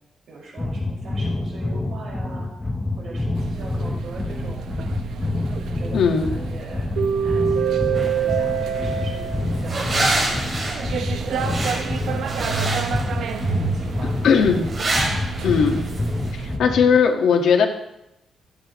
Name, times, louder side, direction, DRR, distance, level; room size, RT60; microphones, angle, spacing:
voice 1, 0.3-2.5 3.0-4.7 5.7-6.9 7.2-9.9 10.6-11.8 13.0-14.3, right 3 dB, 60° right, -3 dB, 5.7 m, -40 dB
sound 1, 0.6-17.0, left 2 dB, 15° left, 0.8 m, -28 dB
sound 2, 3.3-16.6, right 7 dB, 85° right, 1.0 m, -28 dB
voice 2, 5.9-6.3 14.2-14.6 15.4-15.8 16.3-17.7, left 6 dB, 75° left, 3 dB, 1.8 m, -18 dB
sound 3, 8.0-16.3, right 2 dB, 35° right, 3.3 m, -29 dB
24.5 x 8.6 x 3.2 m, 0.85 s
cardioid pair, 145°, 0 cm